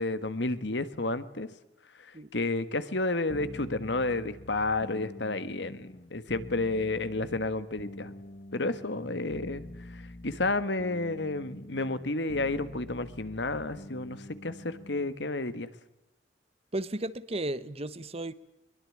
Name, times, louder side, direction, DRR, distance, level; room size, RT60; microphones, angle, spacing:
voice 1, 0.0-1.5 1.9-8.1 8.5-15.7, left 2 dB, 65° left, 1.6 m, -31 dB
sound 1, 3.3-15.2, left 1 dB, 50° left, 1.4 m, -46 dB
voice 2, 16.7-18.3, right 1 dB, 35° right, 1.1 m, -34 dB
22.5 x 22.0 x 8.7 m
head